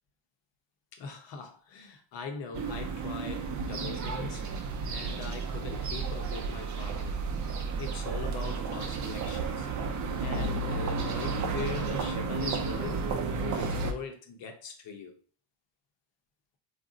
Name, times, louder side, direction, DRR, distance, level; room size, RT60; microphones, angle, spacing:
voice 1, 0.9-4.4 4.8-7.2 7.8-9.7 10.2-13.0 13.4-15.1, left 5 dB, 65° left, 0.8 m, -41 dB
sound 1, 2.5-13.9, right 4 dB, 40° right, 0.5 m, -32 dB
2.6 x 2.0 x 3.7 m
cardioid pair, 105°, 47 cm